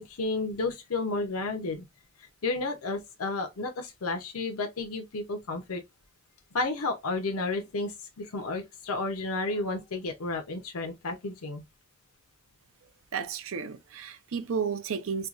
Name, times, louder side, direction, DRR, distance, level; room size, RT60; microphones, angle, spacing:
voice 1, 0.0-1.8 2.4-5.8 6.5-11.6, left 3 dB, 90° left, 0.7 m, -32 dB
voice 2, 13.1-15.3, right 6 dB, 65° right, 0.5 m, -32 dB
4.4 x 2.3 x 2.4 m
head